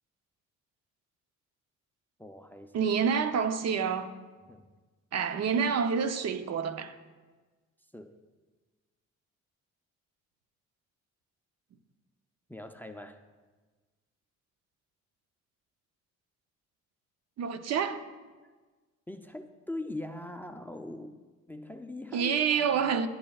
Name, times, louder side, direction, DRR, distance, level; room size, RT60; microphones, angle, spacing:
voice 1, 2.2-2.9 4.5-4.6 7.9-8.1 12.5-13.2 19.1-21.2 21.5-23.1, left 1 dB, 5° left, 0.4 m, -42 dB
voice 2, 2.7-4.1 5.1-7.0 17.4-18.0 22.1-23.1, right 6 dB, 60° right, 0.6 m, -28 dB
13.0 x 10.5 x 2.3 m
cardioid pair, 90°, 30 cm